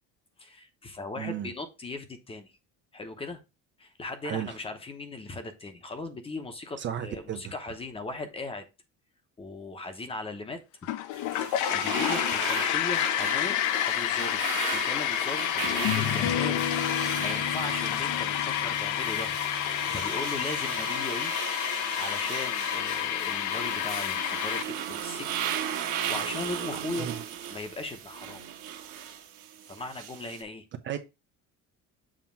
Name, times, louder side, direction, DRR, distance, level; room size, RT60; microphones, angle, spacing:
voice 1, 0.4-2.5 2.9-3.4 3.8-8.6 9.4-10.6 11.3-13.6 13.9-14.4 14.7-19.3 19.6-21.5 21.8-25.4 25.8-27.1 27.5-28.4 29.7-30.7, left 2 dB, 15° left, 0.8 m, -38 dB
voice 2, 1.2-1.5 4.2-4.5 6.8-7.5 27.0-27.2 30.8-31.0, right 9 dB, 35° right, 0.6 m, -34 dB
sound 1, 10.8-24.6, left 11 dB, 60° left, 0.7 m, -29 dB
sound 2, 11.1-30.4, right 9 dB, 65° right, 1.5 m, -37 dB
sound 3, 14.5-14.6 15.6-20.9, left 8 dB, 90° left, 1.3 m, -34 dB
7.4 x 2.9 x 5.6 m
cardioid pair, 170°, 33 cm